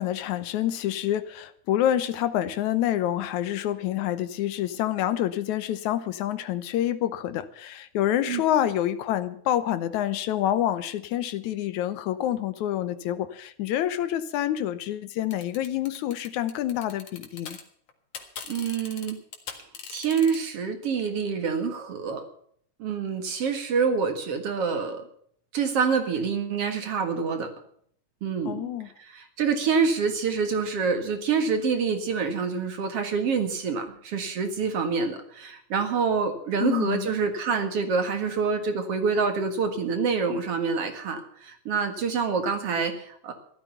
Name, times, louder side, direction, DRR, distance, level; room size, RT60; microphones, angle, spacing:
voice 1, 0.0-17.6 28.5-28.9 36.6-37.1, left 12 dB, 80° left, 13 dB, 2.2 m, -27 dB
sound 1, 15.3-17.6 17.9-20.4, left 6 dB, 55° left, 2.7 m, -40 dB
voice 2, 18.5-19.2 19.9-22.2 22.8-25.1 25.5-27.5 28.2-28.7 29.0-43.3, right 5 dB, 55° right, 7 dB, 2.5 m, -26 dB
15.0 x 12.5 x 5.7 m, 0.63 s
omnidirectional pair, 3.5 m